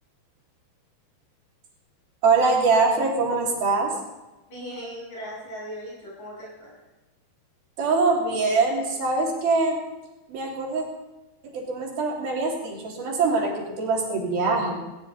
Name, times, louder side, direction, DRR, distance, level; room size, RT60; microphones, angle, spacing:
voice 1, 2.2-4.0 7.8-9.8 10.3-10.8 11.4-14.8, right 3 dB, 70° right, -2 dB, 4.8 m, -23 dB
voice 2, 4.5-6.7, equal, 55° left, -5 dB, 9.6 m, -38 dB
19.0 x 18.0 x 4.2 m, 1.1 s
omnidirectional pair, 4.5 m